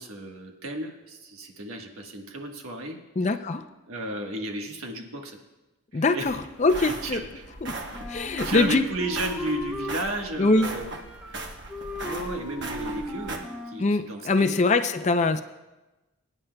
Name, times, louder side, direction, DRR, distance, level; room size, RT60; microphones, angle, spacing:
voice 1, 0.0-3.0 3.9-5.4 5.9-6.3 6.8-7.5 8.4-11.0 11.2-11.5 12.0-14.7, right 1 dB, 85° right, 2 dB, 1.4 m, -34 dB
voice 2, 3.2-3.7 5.9-7.2 7.6-7.8 8.1-8.8 10.4-10.7 13.8-15.4, left 3 dB, 35° left, 9 dB, 0.4 m, -23 dB
sound 1, 6.2-13.4, right 2 dB, 55° right, 1.1 m, -38 dB
Wind instrument woodwind instrument, 7.9-10.0 10.4-11.4 11.7-13.9, equal, 5° right, 0.9 m, -37 dB
22.0 x 9.9 x 2.3 m, 1.1 s
head